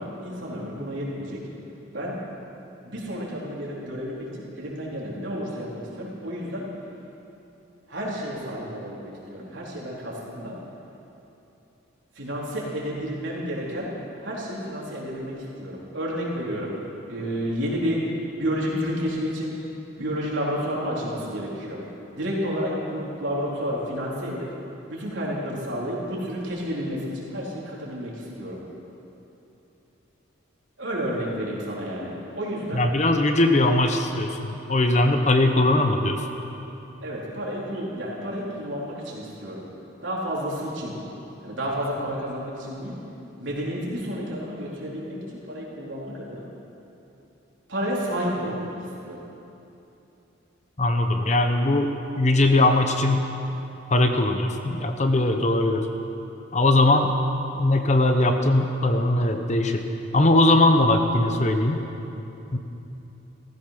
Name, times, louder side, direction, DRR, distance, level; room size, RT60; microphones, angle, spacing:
voice 1, 0.0-1.4 1.9-2.2 2.8-6.7 7.9-10.6 12.2-13.9 14.2-16.7 17.1-18.0 18.4-19.5 20.0-21.8 22.1-24.5 24.9-28.6 30.8-32.9 37.0-39.7 40.0-40.9 41.4-43.0 43.4-46.5 47.7-48.8 49.0-49.2, equal, 70° right, -5 dB, 4.0 m, -30 dB
voice 2, 32.7-36.3 50.8-53.3 53.9-55.9 56.5-57.1 57.6-59.8 60.1-61.8 62.5-62.6, left 2 dB, 35° left, 5 dB, 0.9 m, -20 dB
16.5 x 14.5 x 6.0 m, 2.9 s
head